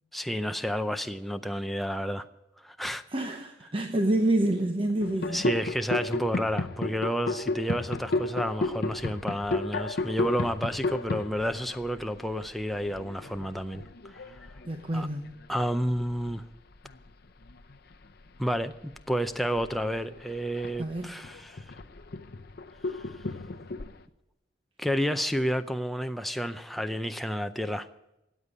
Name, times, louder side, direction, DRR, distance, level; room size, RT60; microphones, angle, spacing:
voice 1, 0.1-2.2 2.6-3.0 5.3-14.5 14.9-15.1 15.5-16.4 18.4-21.7 22.9-23.3 24.8-27.9, equal, ahead, 7 dB, 0.5 m, -31 dB
voice 2, 3.1-5.5 14.6-15.3 20.8-21.1, right 1 dB, 30° right, 4 dB, 0.9 m, -27 dB
sound 1, 5.0-16.4 16.7-17.1 17.4-24.0, left 2 dB, 55° left, 0.7 m, -34 dB
14.0 x 8.3 x 9.6 m, 0.91 s
head